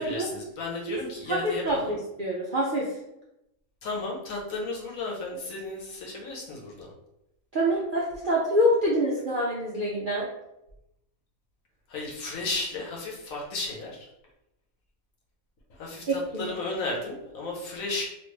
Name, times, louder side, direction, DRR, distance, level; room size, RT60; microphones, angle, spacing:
voice 1, 0.0-2.0 3.8-6.9 11.9-14.1 15.7-18.0, left 2 dB, 70° left, -3 dB, 1.3 m, -34 dB
voice 2, 1.3-3.0 7.5-10.3 16.1-16.5, equal, 65° right, -5 dB, 0.5 m, -26 dB
3.0 x 2.5 x 3.2 m, 0.87 s
omnidirectional pair, 1.5 m